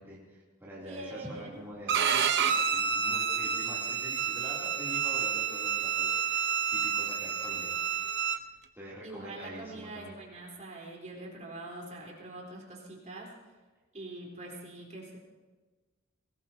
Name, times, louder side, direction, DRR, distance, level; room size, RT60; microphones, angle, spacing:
voice 1, 0.0-7.8 8.1-8.5 8.7-10.1, right 1 dB, 10° right, -8 dB, 3.0 m, -45 dB
voice 2, 0.8-1.6 3.4-3.5 9.0-13.3 13.9-15.2, right 2 dB, 35° right, -2 dB, 3.9 m, -44 dB
Bowed string instrument, 1.9-8.4, right 7 dB, 55° right, 0.8 m, -29 dB
22.5 x 18.5 x 2.9 m, 1.3 s
head